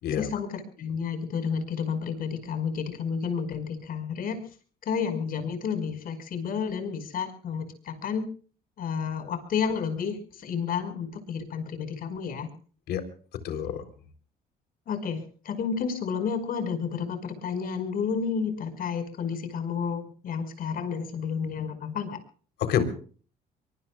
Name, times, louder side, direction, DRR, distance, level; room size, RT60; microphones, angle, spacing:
voice 1, 0.2-4.4 4.8-8.3 8.8-12.5 14.9-22.2, left 6 dB, 60° left, 8 dB, 5.3 m, -31 dB
voice 2, 13.4-13.8 22.6-22.8, left 9 dB, 75° left, 8 dB, 3.8 m, -27 dB
24.5 x 24.0 x 2.4 m, 0.43 s
cardioid pair, 110°, 17 cm